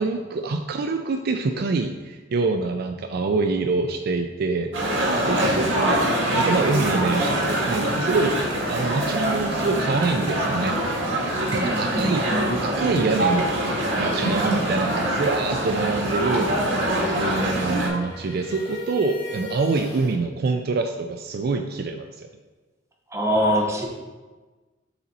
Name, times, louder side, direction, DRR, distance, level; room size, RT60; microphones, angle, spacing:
voice 1, 0.0-5.0 5.2-6.0 6.3-8.4 8.7-10.8 11.5-12.3 12.6-13.6 14.0-16.6 17.1-22.3, right 3 dB, 55° right, 5 dB, 0.4 m, -25 dB
sound 1, 4.7-17.9, right 1 dB, 85° right, 1.7 m, -24 dB
voice 2, 11.6-12.5 23.1-23.9, equal, 15° right, -1 dB, 1.0 m, -24 dB
sound 2, 16.6-20.2, left 3 dB, 45° left, 2.1 m, -39 dB
6.9 x 4.0 x 4.1 m, 1.3 s
head